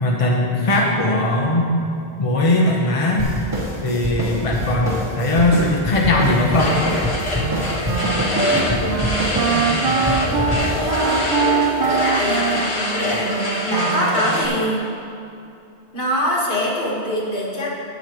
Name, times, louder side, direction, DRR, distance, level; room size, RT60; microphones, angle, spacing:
voice 1, 0.0-1.7 2.2-3.3 3.8-6.8, left 1 dB, 35° left, -2 dB, 1.0 m, -19 dB
sound 1, 3.2-12.0, equal, 20° right, 2.0 m, -26 dB
sound 2, 6.4-14.5, left 1 dB, 80° left, 1.8 m, -25 dB
Wind instrument woodwind instrument, 7.4-14.7, right 6 dB, 65° right, 0.8 m, -24 dB
voice 2, 8.4-9.1 9.9-11.3 11.9-12.6 13.0-14.9 15.9-17.7, equal, 65° left, -4 dB, 2.0 m, -24 dB
13.5 x 8.7 x 3.1 m, 2.6 s
omnidirectional pair, 1.1 m